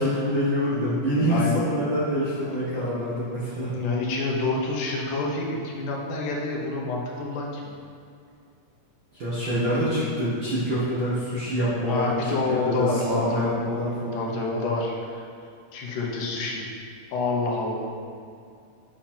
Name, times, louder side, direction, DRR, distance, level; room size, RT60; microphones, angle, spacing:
voice 1, 0.0-3.7 9.1-12.1 12.5-14.3, equal, 50° right, -10 dB, 1.4 m, -26 dB
voice 2, 0.7-1.6 2.5-2.6 3.7-7.8 11.9-13.8 14.1-15.3 15.7-16.6 17.1-17.9, left 3 dB, 75° left, -2 dB, 2.4 m, -28 dB
7.5 x 6.4 x 4.4 m, 2.4 s
omnidirectional pair, 3.9 m